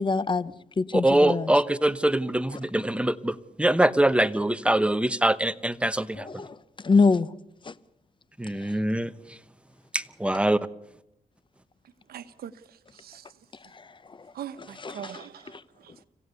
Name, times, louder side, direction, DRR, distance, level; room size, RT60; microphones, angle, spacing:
voice 1, 0.0-1.5 6.2-6.5 6.8-7.3 7.7-7.8 14.8-14.9, left 4 dB, 30° left, 0.8 m, -24 dB
voice 2, 0.9-6.4 8.4-9.1 9.9-10.6, right 1 dB, 5° right, 0.9 m, -23 dB
voice 3, 12.1-13.3 14.3-16.0, right 9 dB, 90° right, 1.1 m, -42 dB
26.0 x 16.0 x 6.9 m
cardioid pair, 85°, 15 cm